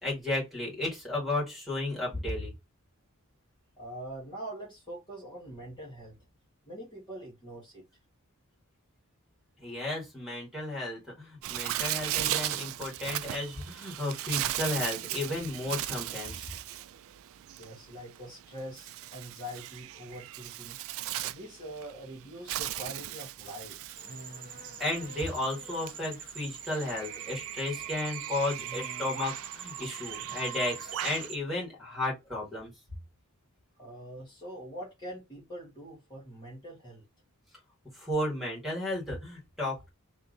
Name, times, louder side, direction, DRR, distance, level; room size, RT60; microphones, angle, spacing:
voice 1, 0.0-2.5 9.6-16.6 24.8-32.7 37.9-39.9, left 2 dB, ahead, 2.0 m, -33 dB
voice 2, 3.8-6.2 6.7-7.9 17.6-20.8 21.2-23.9 33.8-37.0, right 1 dB, 20° left, 1.6 m, -44 dB
Bird, 11.4-31.3, right 13 dB, 65° right, 0.3 m, -37 dB
sound 1, 24.0-31.4, right 6 dB, 40° right, 0.8 m, -44 dB
3.5 x 2.9 x 3.8 m
head